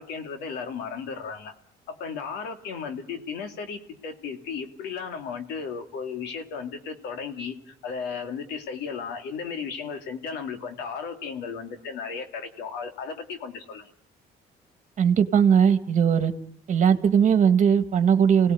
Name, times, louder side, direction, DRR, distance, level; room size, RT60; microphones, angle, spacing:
voice 1, 0.0-1.5 1.9-13.9, left 6 dB, 85° left, 6 dB, 2.7 m, -35 dB
voice 2, 15.0-16.3 16.7-18.5, right 7 dB, 45° right, 9 dB, 1.8 m, -19 dB
28.5 x 18.0 x 9.5 m, 0.73 s
cardioid pair, 110°, 17 cm